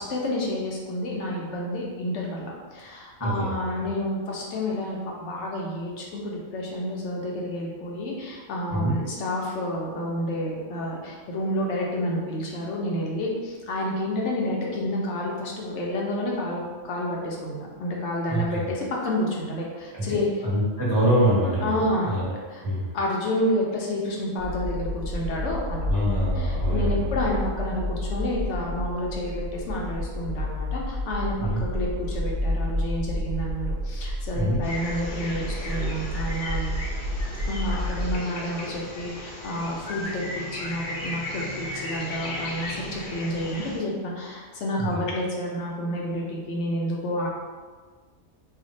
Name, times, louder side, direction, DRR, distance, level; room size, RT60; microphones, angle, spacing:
voice 1, 0.0-20.3 21.6-22.1 22.5-22.6 22.9-25.9 26.4-31.3 31.6-36.7 37.4-47.3, left 1 dB, 75° left, -2 dB, 0.9 m, -29 dB
voice 2, 3.2-3.8 8.7-8.9 18.3-18.6 19.9-20.0 20.4-21.7 22.0-22.3 22.6-22.9 25.9-27.2 31.4-31.6 34.3-34.6 44.8-44.9, right 1 dB, 20° right, -9 dB, 0.7 m, -25 dB
sound 1, 24.4-38.2, left 1 dB, 60° right, 0.5 m, -30 dB
sound 2, 34.6-43.8, left 1 dB, 60° left, 0.6 m, -35 dB
2.5 x 2.1 x 3.9 m, 1.5 s
omnidirectional pair, 1.2 m